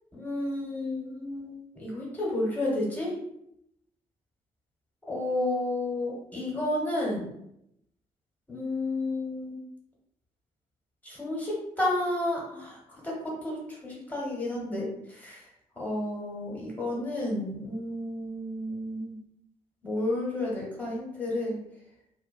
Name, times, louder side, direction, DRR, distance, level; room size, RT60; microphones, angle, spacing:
voice 1, 0.1-3.1 5.1-7.2 8.5-9.6 11.0-12.8 13.0-13.6 13.8-14.9 15.2-15.4 15.8-19.1 19.8-21.6, left 1 dB, 10° left, -5 dB, 1.2 m, -31 dB
2.5 x 2.2 x 2.4 m, 0.78 s
figure-of-eight pair, 40°, 21 cm